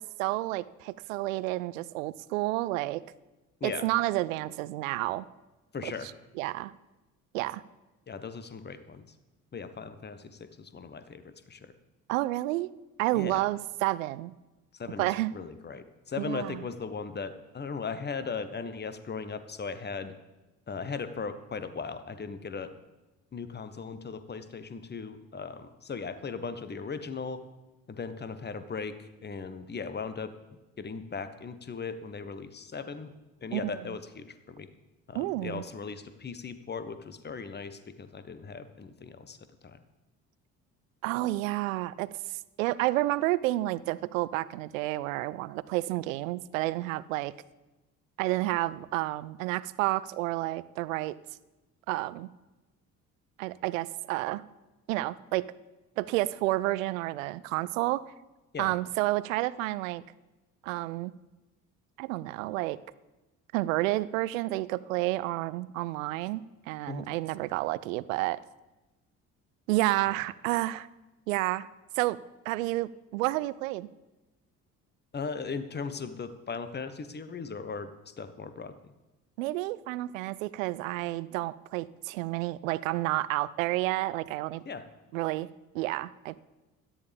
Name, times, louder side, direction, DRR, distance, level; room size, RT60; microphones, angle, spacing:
voice 1, 0.0-3.0 3.6-5.2 5.8-6.1 6.4-6.7 7.3-7.6 12.1-12.7 13.0-14.3 15.0-15.3 16.2-16.6 33.5-33.6 35.1-35.6 41.0-42.1 42.6-47.3 48.2-51.2 51.9-52.3 53.4-54.4 54.9-55.5 56.0-58.1 58.6-60.0 60.6-61.1 62.0-62.8 63.5-68.4 69.7-70.9 71.3-71.7 72.0-72.2 72.5-73.9 79.4-84.6 85.1-85.5 85.7-86.4, right 18 dB, 65° right, 19 dB, 0.6 m, -30 dB
voice 2, 5.7-6.1 8.1-9.1 9.5-11.7 13.1-13.4 14.7-20.1 20.7-22.7 23.3-27.4 27.9-30.3 30.8-33.1 33.4-34.7 35.1-39.4 39.6-39.8 58.5-58.7 66.9-67.0 75.1-78.9 84.6-84.8, left 5 dB, 25° left, 11 dB, 1.2 m, -38 dB
17.0 x 13.0 x 3.6 m, 1.1 s
figure-of-eight pair, 50°, 42 cm